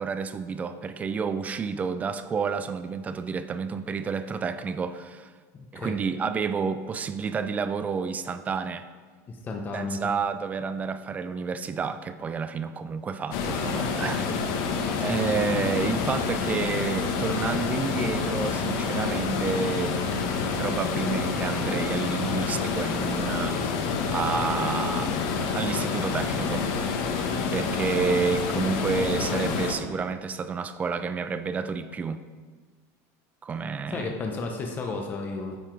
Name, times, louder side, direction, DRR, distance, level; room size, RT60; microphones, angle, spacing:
voice 1, 0.0-5.3 5.7-8.9 9.7-14.3 15.0-20.0 20.6-23.6 24.1-25.2 25.5-26.7 27.5-32.2 33.4-34.1, right 5 dB, 20° right, 11 dB, 0.4 m, -30 dB
voice 2, 5.5-6.0 9.3-10.0 33.9-35.6, left 3 dB, 20° left, 2 dB, 0.7 m, -33 dB
sound 1, 13.3-29.7, left 5 dB, 55° left, 1.0 m, -28 dB
9.2 x 5.7 x 4.6 m, 1.5 s
supercardioid pair, 155°, 8 cm